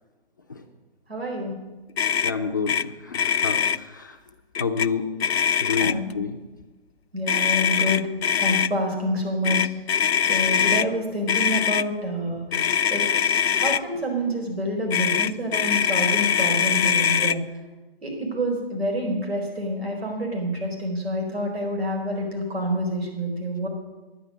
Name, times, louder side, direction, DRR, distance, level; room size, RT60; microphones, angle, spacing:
voice 1, 1.1-1.5 5.8-6.0 7.1-8.0 8.4-9.6 10.2-12.4 12.9-13.0 13.5-17.4 18.0-23.7, equal, 80° right, 1 dB, 4.4 m, -27 dB
Motor vehicle (road), 2.0-2.3 2.7-2.8 3.1-3.8 4.5-4.9 5.2-6.1 7.3-8.7 9.4-10.9 11.3-11.8 12.5-13.8 14.9-17.4, left 8 dB, 85° left, 0.5 m, -22 dB
voice 2, 2.2-4.3 4.6-5.1 5.6-6.4, left 5 dB, 20° left, 3 dB, 0.4 m, -29 dB
11.0 x 9.5 x 6.3 m, 1.2 s
figure-of-eight pair, 150°, 30 cm